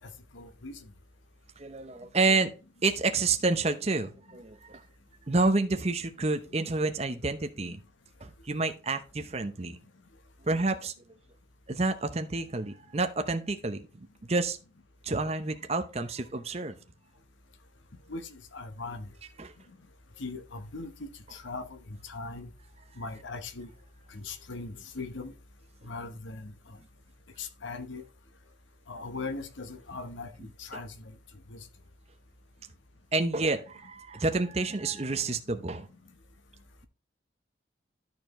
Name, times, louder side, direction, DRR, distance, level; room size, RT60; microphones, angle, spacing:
voice 1, 0.3-0.8 18.1-19.1 20.2-21.8 22.0-22.5 23.0-23.7 24.1-25.3 25.8-26.5 27.4-28.0 28.9-30.9 31.5-31.6, left 3 dB, 85° left, 1.0 m, -39 dB
voice 2, 1.6-2.5 2.8-4.8 5.3-7.8 8.2-9.8 10.4-10.9 11.7-14.6 15.0-16.8 19.4-19.5 30.7-30.8 33.1-35.9, right 3 dB, 35° right, 0.7 m, -29 dB
12.5 x 4.5 x 3.1 m
head